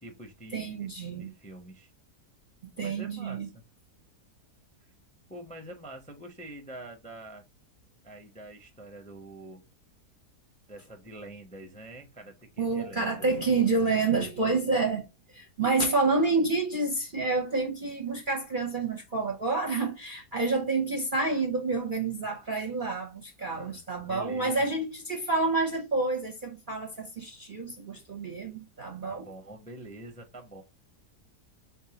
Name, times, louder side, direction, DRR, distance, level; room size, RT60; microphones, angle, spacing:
voice 1, 0.0-0.9 1.2-1.9 2.8-3.6 4.8-4.9 5.3-7.5 8.0-9.6 10.7-13.2 23.4-24.7 29.0-30.6, right 1 dB, 5° left, 0.6 m, -46 dB
voice 2, 0.5-1.3 2.8-3.5 12.6-15.0 15.3-29.2, right 3 dB, 45° right, 0.7 m, -28 dB
4.3 x 3.5 x 2.8 m
omnidirectional pair, 1.7 m